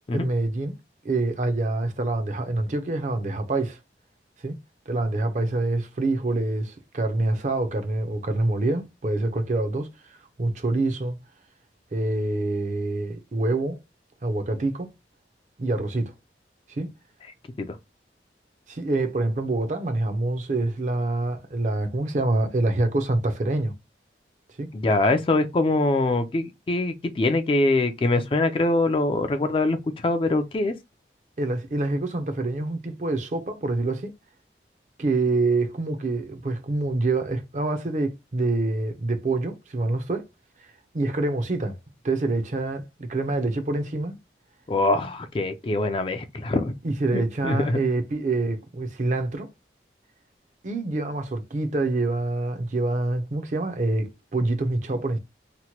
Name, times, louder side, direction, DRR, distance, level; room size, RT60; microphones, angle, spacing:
voice 1, 0.1-0.8 1.0-3.8 4.4-4.6 4.9-11.2 11.9-13.8 14.2-14.9 15.6-16.1 16.7-16.9 18.7-23.7 24.6-24.7 31.4-34.1 35.0-40.3 40.6-41.8 42.0-44.1 46.8-49.5 50.6-55.2, right 2 dB, 45° right, 0.5 m, -26 dB
voice 2, 24.7-30.7 44.7-46.8 47.1-47.8, left 2 dB, 30° left, 0.3 m, -23 dB
2.9 x 2.1 x 2.8 m
head